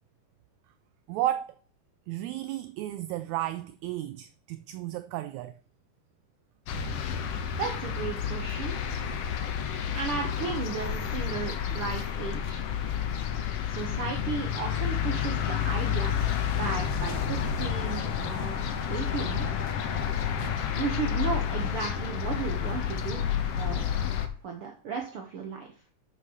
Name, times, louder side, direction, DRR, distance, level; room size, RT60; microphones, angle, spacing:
voice 1, 1.1-1.5 2.1-5.5, right 13 dB, 80° right, 1.7 m, -33 dB
sound 1, 6.7-24.3, left 8 dB, 65° left, 1.6 m, -30 dB
voice 2, 7.6-8.8 9.9-12.7 13.7-16.2 16.6-19.5 20.7-23.2 23.6-23.9 24.4-25.7, right 5 dB, 60° right, 1.6 m, -35 dB
6.9 x 6.2 x 6.3 m
omnidirectional pair, 3.7 m